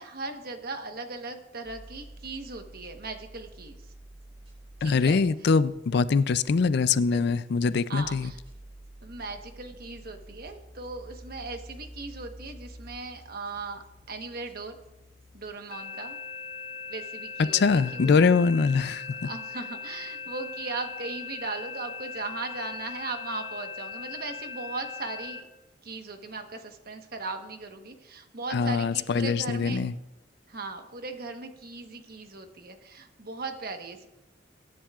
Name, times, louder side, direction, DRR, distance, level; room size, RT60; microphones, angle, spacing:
voice 1, 0.0-3.8 4.8-5.5 7.1-7.3 7.9-8.4 9.0-14.8 15.3-16.1 16.9-18.3 19.2-25.5 25.8-29.9 30.5-34.1, right 3 dB, 55° right, 6 dB, 1.2 m, -38 dB
sound 1, 1.6-15.5, right 1 dB, 30° right, 4.0 m, -49 dB
voice 2, 4.8-8.3 17.4-19.3 28.5-29.9, left 4 dB, 60° left, 16 dB, 0.4 m, -23 dB
sound 2, 15.7-25.4, left 6 dB, 35° left, 1.8 m, -39 dB
23.0 x 10.0 x 2.4 m, 0.94 s
head